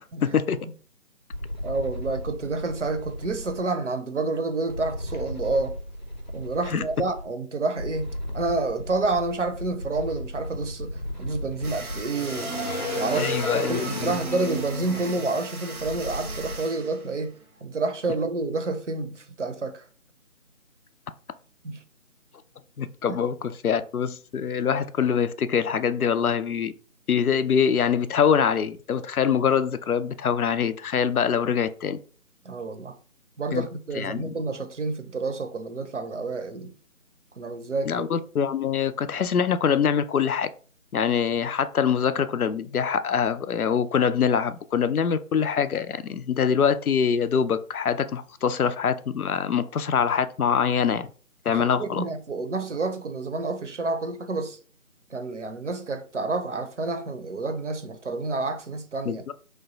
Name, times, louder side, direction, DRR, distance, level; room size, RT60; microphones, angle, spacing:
voice 1, 0.2-0.6 6.7-6.8 13.1-14.2 22.8-26.7 27.1-32.0 33.5-33.7 33.9-34.3 37.9-40.5 40.9-51.1 51.5-52.0 59.1-59.3, left 7 dB, 90° left, 0.5 m, -24 dB
sound 1, 1.3-3.6 4.7-7.2 7.8-16.6, left 1 dB, 35° left, 0.5 m, -34 dB
voice 2, 1.6-5.8 6.3-12.5 12.9-17.3 17.6-19.8 21.6-21.8 23.1-23.2 32.5-33.0 33.4-36.7 37.4-38.1 51.5-54.6 55.1-59.2, right 3 dB, 60° right, 0.5 m, -29 dB
sound 2, 11.6-17.6, right 3 dB, 90° right, 0.8 m, -39 dB
3.1 x 2.2 x 3.9 m
figure-of-eight pair, 160°, 42 cm